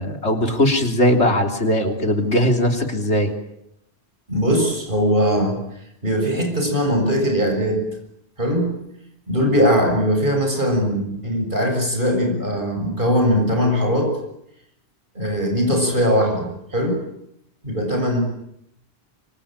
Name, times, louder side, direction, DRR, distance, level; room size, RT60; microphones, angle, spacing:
voice 1, 0.0-3.3, left 1 dB, 85° left, 4 dB, 3.8 m, -19 dB
voice 2, 4.3-5.6 6.0-7.8 8.4-8.7 9.3-14.1 15.2-17.0 17.6-18.2, equal, 50° right, 3 dB, 6.9 m, -20 dB
26.0 x 25.0 x 8.9 m, 0.78 s
omnidirectional pair, 1.1 m